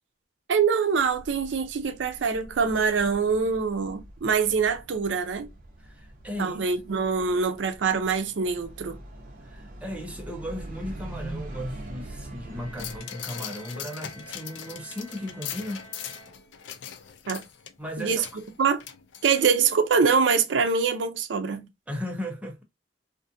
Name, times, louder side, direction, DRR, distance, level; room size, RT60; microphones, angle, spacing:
voice 1, 0.5-5.5 6.4-9.0 17.3-17.4 18.0-18.2 18.6-18.8 19.2-21.7, right 5 dB, 90° right, 0.5 m, -24 dB
sound 1, 0.9-13.0, right 1 dB, 50° right, 0.7 m, -43 dB
voice 2, 5.8-6.7 9.4-15.9 17.8-18.3 21.9-22.6, left 1 dB, 5° right, 0.7 m, -36 dB
Bowed string instrument, 12.5-16.9, equal, 15° left, 0.9 m, -50 dB
sound 2, 12.8-19.7 20.0-20.1, left 9 dB, 85° left, 0.4 m, -40 dB
2.5 x 2.4 x 2.5 m
head